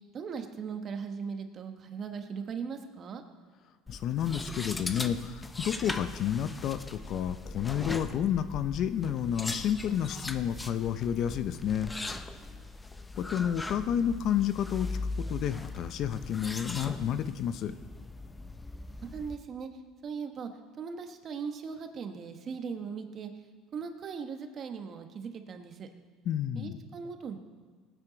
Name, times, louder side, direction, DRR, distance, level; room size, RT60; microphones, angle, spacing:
voice 1, 0.1-3.2 12.4-12.7 18.9-20.5 20.8-23.3 23.7-25.9 26.5-27.4, right 6 dB, 40° right, 6 dB, 1.2 m, -39 dB
voice 2, 3.9-11.9 13.2-17.7 26.3-26.7, left 9 dB, 55° left, 11 dB, 0.7 m, -30 dB
sound 1, 3.9-19.3, left 2 dB, 15° left, 0.7 m, -40 dB
18.5 x 9.3 x 4.0 m, 1.5 s
supercardioid pair, 110°, 0 cm